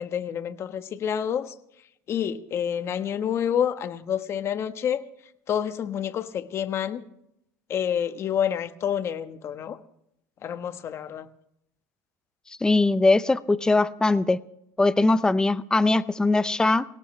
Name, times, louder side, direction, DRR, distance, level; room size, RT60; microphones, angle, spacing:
voice 1, 0.0-1.5 2.1-5.0 5.5-7.0 7.7-9.8 10.4-11.3, left 9 dB, 40° left, 9 dB, 1.3 m, -28 dB
voice 2, 12.6-14.4 14.8-16.8, left 2 dB, 10° left, 15 dB, 0.7 m, -21 dB
22.5 x 18.0 x 3.3 m, 0.77 s
supercardioid pair, 120°, 7 cm